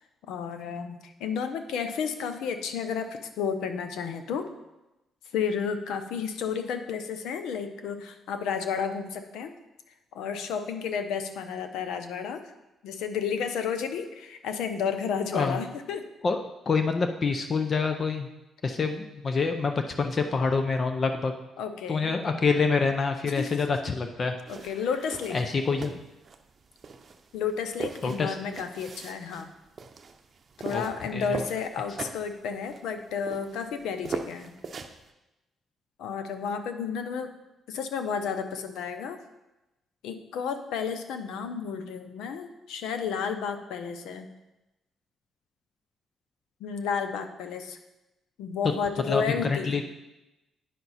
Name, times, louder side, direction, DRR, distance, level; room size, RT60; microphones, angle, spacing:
voice 1, 0.3-4.5 5.3-9.5 10.1-12.4 12.8-16.0 21.6-22.1 23.2-23.7 24.5-25.5 27.3-29.5 30.6-34.5 36.0-37.3 37.7-39.2 40.0-44.3 46.6-47.8 48.4-49.8, left 6 dB, 85° left, 8 dB, 0.7 m, -32 dB
voice 2, 16.7-18.3 18.6-21.3 21.9-24.4 25.3-25.9 28.0-28.4 30.7-30.8 31.1-31.3 49.1-49.8, left 4 dB, 40° left, 6 dB, 0.6 m, -26 dB
sound 1, 24.5-35.1, right 4 dB, 45° right, 0.7 m, -41 dB
9.2 x 5.8 x 4.1 m, 0.98 s
cardioid pair, 90°, 0 cm